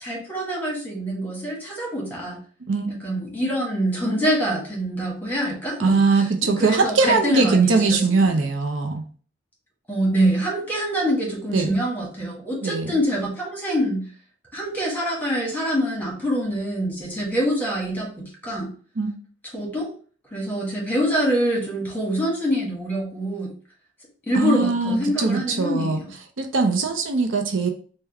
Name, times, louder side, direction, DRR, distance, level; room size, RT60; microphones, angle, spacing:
voice 1, 0.0-2.4 3.0-8.2 9.9-14.0 14.5-18.7 19.5-19.9 20.3-23.5 24.3-26.0, equal, 10° left, -2 dB, 1.1 m, -25 dB
voice 2, 5.8-9.0 11.5-11.7 12.6-13.0 19.0-19.1 24.3-26.0 26.4-27.7, right 4 dB, 90° right, 5 dB, 0.6 m, -21 dB
3.5 x 2.2 x 3.3 m, 0.42 s
head